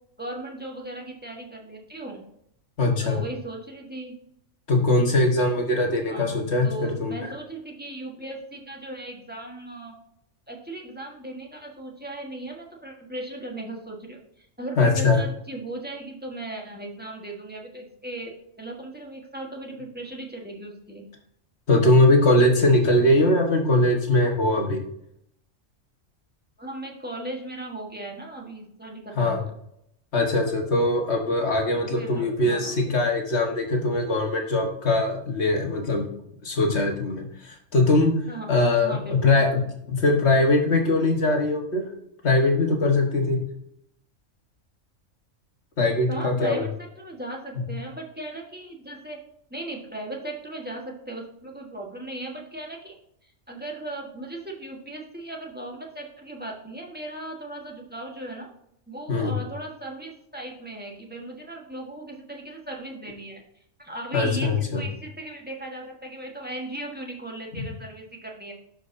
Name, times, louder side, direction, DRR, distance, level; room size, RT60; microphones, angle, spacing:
voice 1, 0.2-2.2 3.0-4.1 6.1-9.9 10.5-21.0 26.6-29.5 31.8-32.9 38.3-38.5 38.8-39.4 46.1-49.2 49.5-53.0 53.2-58.5 58.9-63.4 63.8-68.5, right 1 dB, 10° right, -1 dB, 1.3 m, -37 dB
voice 2, 2.8-3.2 4.7-6.7 7.0-7.3 14.8-15.2 21.7-24.8 29.2-29.4 30.1-36.1 36.4-38.1 38.5-41.8 42.2-43.4 45.8-46.7 59.1-59.3 64.1-64.8 67.6-67.7, left 2 dB, 55° left, 1 dB, 1.8 m, -21 dB
12.0 x 5.2 x 2.7 m, 0.75 s
omnidirectional pair, 1.4 m